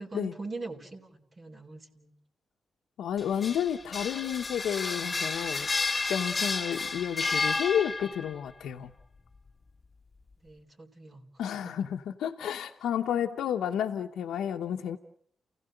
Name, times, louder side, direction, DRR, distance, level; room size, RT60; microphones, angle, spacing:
voice 1, 0.0-2.1 10.4-11.2, right 3 dB, 40° right, -1 dB, 3.9 m, -42 dB
voice 2, 3.0-8.9 11.4-15.0, left 9 dB, 90° left, 2 dB, 0.9 m, -31 dB
sound 1, 3.2-8.4, left 4 dB, 35° left, 1.2 m, -31 dB
29.0 x 16.5 x 7.9 m, 0.66 s
cardioid pair, 70°, 0 cm